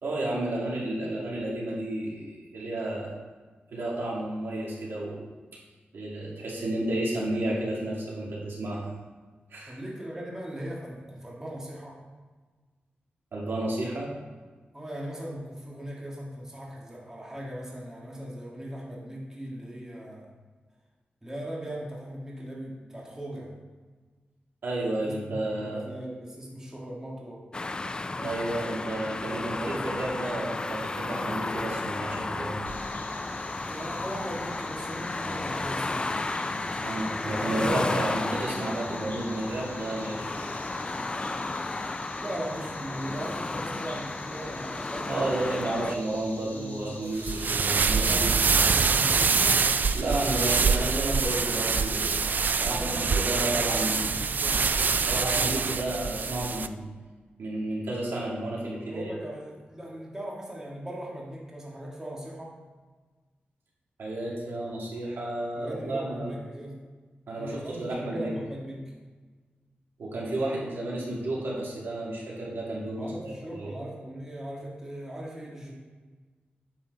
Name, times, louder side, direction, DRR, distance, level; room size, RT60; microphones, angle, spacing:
voice 1, 0.0-3.1 3.7-5.3 5.9-8.8 9.5-9.8 13.3-14.1 24.6-25.9 28.2-32.6 36.8-40.5 45.1-48.2 49.9-52.2 52.6-54.1 55.1-56.9 57.4-59.0 64.0-66.3 67.3-68.3 70.0-73.7, right 1 dB, 85° right, -5 dB, 2.6 m, -32 dB
voice 2, 9.7-12.0 14.7-20.3 21.2-23.6 25.0-27.5 33.7-36.1 42.2-47.2 47.9-49.8 52.6-54.7 55.8-55.9 58.9-62.6 65.6-66.8 67.3-68.9 73.0-75.7, right 1 dB, 15° right, -4 dB, 1.8 m, -39 dB
sound 1, 27.5-46.0, left 2 dB, 25° left, 0.3 m, -33 dB
sound 2, 32.6-50.6, left 2 dB, 55° left, 1.7 m, -46 dB
sound 3, 47.2-56.7, right 5 dB, 55° right, 0.4 m, -25 dB
9.1 x 7.3 x 4.0 m, 1.4 s
wide cardioid pair, 135°, 4 cm